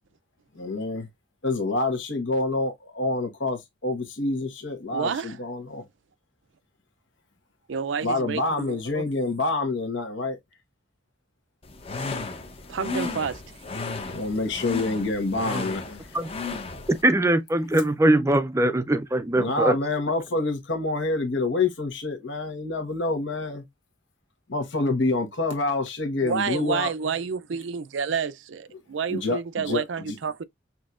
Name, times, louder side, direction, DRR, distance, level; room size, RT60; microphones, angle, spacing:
voice 1, 0.5-1.1 1.4-5.8 8.0-10.4 14.1-16.2 19.3-23.6 24.5-26.9 29.1-29.4 29.6-30.2, left 2 dB, 75° left, 1.3 m, -27 dB
voice 2, 4.9-5.4 7.7-9.1 12.7-13.4 26.2-30.4, right 6 dB, 75° right, 0.5 m, -29 dB
sound 1, 11.6-17.0, left 3 dB, 30° left, 0.7 m, -34 dB
voice 3, 16.9-19.8, right 1 dB, 15° right, 0.4 m, -21 dB
6.1 x 2.8 x 2.4 m
head